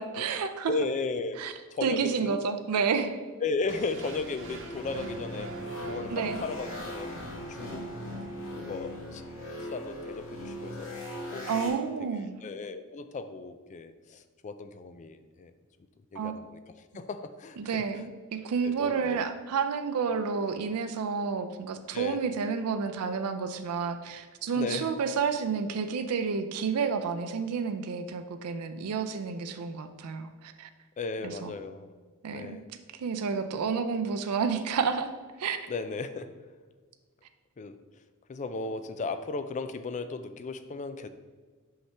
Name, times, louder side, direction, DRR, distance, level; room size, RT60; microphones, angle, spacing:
voice 1, 0.0-0.7 1.4-1.5 1.8-3.1 6.1-6.4 11.5-12.4 16.1-16.4 17.6-30.7 31.2-31.5 32.2-32.6 33.0-35.1 35.4-35.6, right 5 dB, 90° right, 8 dB, 0.4 m, -30 dB
voice 2, 0.7-1.4 1.7-2.4 3.4-5.5 5.9-7.1 7.5-7.8 8.6-9.2 9.7-10.9 11.3-11.8 12.4-15.5 16.1-16.6 16.9-17.8 18.6-19.2 21.9-22.2 24.5-24.9 31.0-31.9 32.3-32.6 35.7-36.3 37.6-37.8 38.3-41.1, left 3 dB, 35° left, 10 dB, 0.4 m, -35 dB
sound 1, 3.7-9.7, right 1 dB, 60° right, 0.8 m, -44 dB
sound 2, 4.7-11.7, left 1 dB, 65° left, 1.7 m, -39 dB
5.7 x 5.5 x 3.4 m, 1.4 s
head